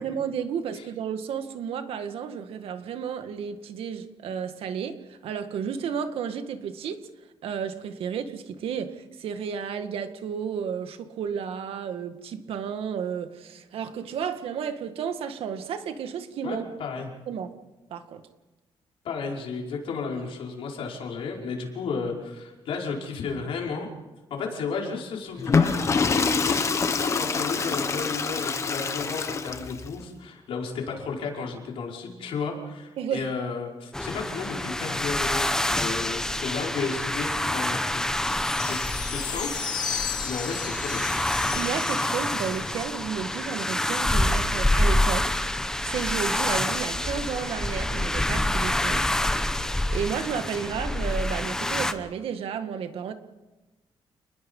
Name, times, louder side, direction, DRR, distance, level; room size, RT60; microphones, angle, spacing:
voice 1, 0.0-7.0 7.4-16.6 17.3-17.5 17.9-18.2 33.0-33.3 41.5-45.4 45.8-49.1 49.9-53.1, right 7 dB, 80° right, 8 dB, 1.9 m, -32 dB
voice 2, 16.4-17.1 19.0-23.9 24.3-38.0 38.6-41.0, left 5 dB, 75° left, 0 dB, 5.2 m, -33 dB
Water / Toilet flush, 25.4-29.9, left 5 dB, 30° left, 1.2 m, -25 dB
sound 1, 33.9-51.9, left 1 dB, 5° left, 1.0 m, -27 dB
sound 2, 38.1-42.8, left 7 dB, 50° left, 3.7 m, -34 dB
29.5 x 20.5 x 5.6 m, 1.1 s
wide cardioid pair, 170°, 10 cm